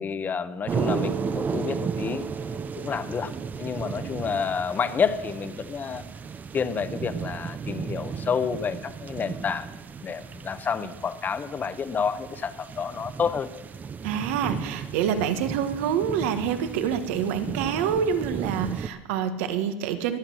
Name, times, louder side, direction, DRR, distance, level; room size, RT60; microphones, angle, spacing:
voice 1, 0.0-3.3 3.6-6.0 6.5-9.7 10.0-13.5, left 6 dB, 25° left, 12 dB, 0.9 m, -29 dB
sound 1, 0.7-18.9, right 6 dB, 25° right, 0.6 m, -35 dB
Guitar, 0.7-4.7, right 5 dB, 50° right, 1.9 m, -36 dB
voice 2, 14.0-20.2, right 8 dB, 75° right, 9 dB, 1.4 m, -27 dB
21.5 x 8.5 x 6.3 m, 1.1 s
supercardioid pair, 125°, 7 cm